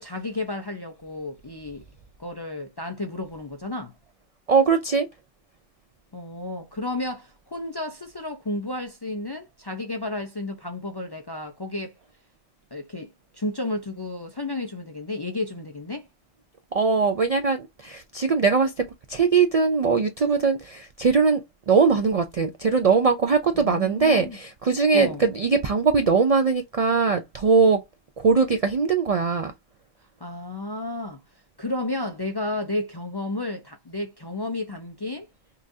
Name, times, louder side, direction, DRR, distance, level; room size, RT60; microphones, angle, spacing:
voice 1, 0.0-1.8 2.2-3.9 6.1-11.9 12.7-16.1 23.5-24.4 24.9-25.2 30.2-31.2 31.6-35.3, left 2 dB, 35° left, 0.4 m, -32 dB
voice 2, 4.5-5.1 16.7-27.8 28.2-29.5, right 5 dB, 55° right, 0.4 m, -21 dB
5.6 x 2.5 x 2.6 m
omnidirectional pair, 1.1 m